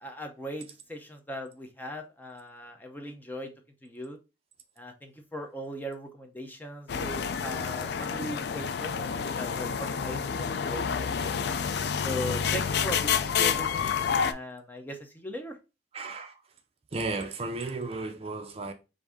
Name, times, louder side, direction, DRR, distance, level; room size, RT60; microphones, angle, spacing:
voice 1, 0.0-3.5 3.8-4.2 4.8-11.1 12.0-15.6, equal, 10° left, 0.6 m, -39 dB
sound 1, 6.9-14.3, left 7 dB, 65° left, 0.4 m, -29 dB
voice 2, 15.9-16.4 16.9-18.7, right 3 dB, 35° right, 0.5 m, -34 dB
4.7 x 2.6 x 3.5 m
head